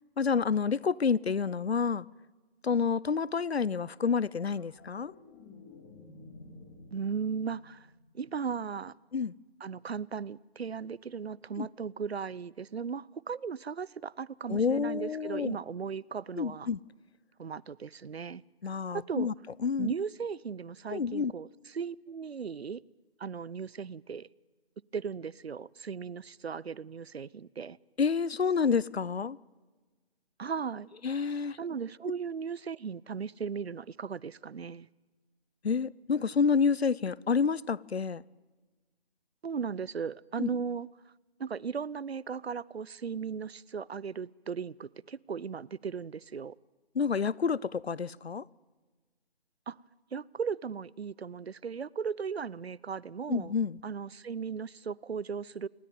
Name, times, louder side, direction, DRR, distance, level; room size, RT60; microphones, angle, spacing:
voice 1, 0.2-2.1 2.6-5.1 9.1-9.3 11.6-11.7 14.5-15.6 16.4-16.8 18.6-19.3 19.6-19.9 20.9-21.3 28.0-29.4 31.0-31.6 35.6-38.2 40.4-40.5 46.9-48.4 53.3-53.8, left 5 dB, 80° left, 0.8 m, -29 dB
sound 1, 4.2-8.7 11.1-11.2, left 3 dB, 15° left, 2.4 m, -53 dB
voice 2, 6.9-7.9 8.1-8.9 9.6-16.7 17.4-18.4 18.9-19.3 19.8-21.5 21.7-22.8 23.2-24.3 24.9-27.8 30.4-30.9 31.6-34.9 39.4-40.9 41.4-46.6 49.7-49.8 50.1-53.5 53.8-55.7, right 6 dB, 75° right, 0.8 m, -37 dB
27.0 x 19.5 x 9.4 m
figure-of-eight pair, 160°, 31 cm